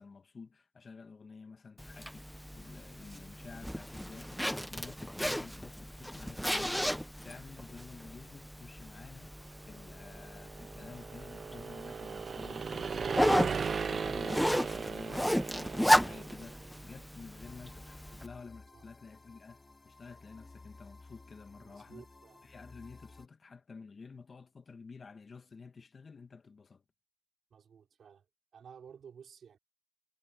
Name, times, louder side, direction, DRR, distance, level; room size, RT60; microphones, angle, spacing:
voice 1, 0.0-13.2 13.6-22.0 22.4-26.8, left 4 dB, 50° left, 1.4 m, -51 dB
Zipper (clothing), 1.8-18.3, equal, ahead, 0.5 m, -34 dB
sound 1, 9.7-16.7, right 6 dB, 60° right, 0.5 m, -37 dB
sound 2, 17.4-23.3, left 3 dB, 30° left, 5.2 m, -55 dB
voice 2, 21.6-22.5 27.5-28.3 28.5-29.6, right 7 dB, 80° right, 4.4 m, -54 dB
cardioid pair, 85°, 0 cm